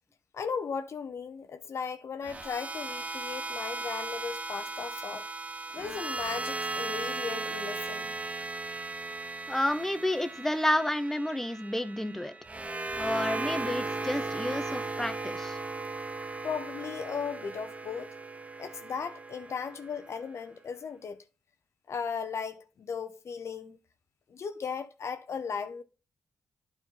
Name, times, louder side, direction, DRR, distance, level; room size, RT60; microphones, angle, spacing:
voice 1, 0.3-5.3 5.7-8.2 16.4-18.1 18.6-21.2 21.9-23.8 24.3-25.8, left 6 dB, 65° left, 0.8 m, -36 dB
sound 1, 2.2-20.4, right 3 dB, 25° right, 0.9 m, -37 dB
voice 2, 9.5-12.3 13.0-15.6, left 1 dB, 10° left, 0.9 m, -30 dB
9.2 x 4.4 x 3.9 m
cardioid pair, 55°, 5 cm